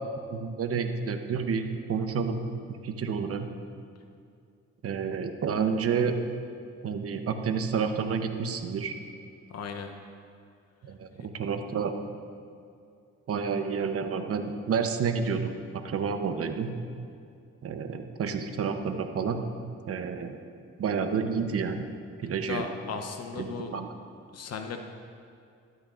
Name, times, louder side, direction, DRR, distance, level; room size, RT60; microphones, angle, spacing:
voice 1, 0.3-2.4 2.8-3.5 4.8-6.2 6.8-8.9 10.8-11.9 13.3-16.7 17.6-19.4 19.9-20.4 20.8-21.9 22.2-22.7 23.4-23.9, right 6 dB, 50° right, 6 dB, 0.9 m, -29 dB
voice 2, 9.5-9.9 22.4-23.7 24.3-24.8, left 5 dB, 55° left, 5 dB, 0.9 m, -36 dB
12.5 x 12.5 x 2.5 m, 2.4 s
cardioid pair, 90°, 30 cm